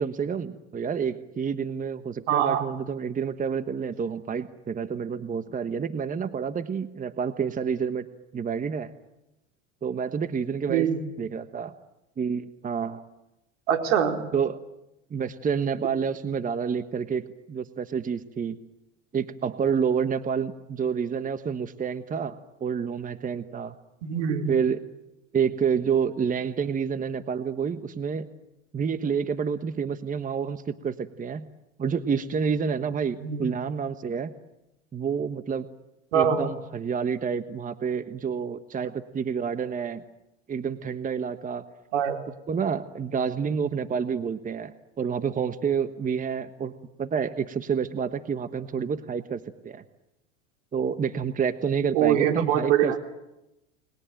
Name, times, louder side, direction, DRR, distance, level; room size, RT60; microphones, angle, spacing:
voice 1, 0.0-8.1 8.3-8.9 9.8-10.9 11.2-11.7 12.2-13.0 14.3-14.6 15.1-18.6 19.1-23.7 24.5-24.8 25.3-28.3 28.7-31.5 31.8-34.3 34.9-35.7 36.1-40.0 40.5-41.6 42.5-49.8 50.7-52.9, right 6 dB, 20° right, 11 dB, 1.3 m, -28 dB
voice 2, 2.3-2.6 10.7-11.0 13.7-14.2 24.0-24.5 33.2-33.4 36.1-36.5 41.9-42.2 51.9-53.0, right 9 dB, 75° right, 4 dB, 4.3 m, -23 dB
29.5 x 21.0 x 9.1 m, 0.93 s
hypercardioid pair, 105°, 37 cm